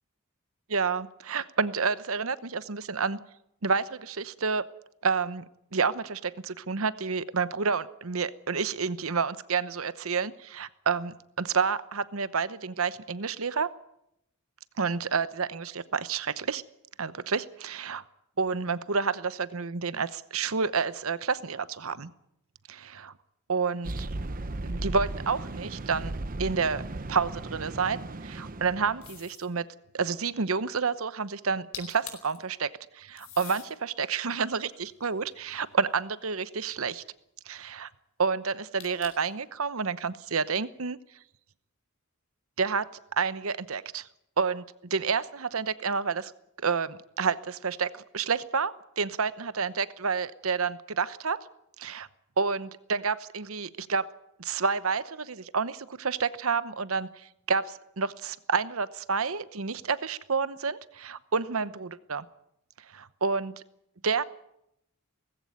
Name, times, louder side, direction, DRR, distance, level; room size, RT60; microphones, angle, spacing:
voice 1, 0.7-3.2 3.6-4.6 5.0-5.4 5.7-13.7 14.8-16.6 17.0-18.0 18.4-22.1 22.7-23.1 23.5-23.9 24.6-26.8 27.1-29.6 29.9-32.7 32.9-37.0 37.5-37.9 38.2-41.0 42.6-42.9 43.1-44.1 44.4-44.6 44.9-46.3 46.6-51.4 51.8-52.1 52.4-54.1 54.4-62.3 62.9-63.5 64.0-64.2, right 5 dB, 75° right, 15 dB, 0.9 m, -29 dB
sound 1, 23.8-29.2, right 2 dB, 40° right, 0.9 m, -36 dB
sound 2, 29.0-29.5 31.5-31.6 31.7-32.4 33.2-33.7 34.4-35.8 38.8-39.4, left 10 dB, 75° left, 4.5 m, -45 dB
19.0 x 16.0 x 9.3 m, 0.81 s
head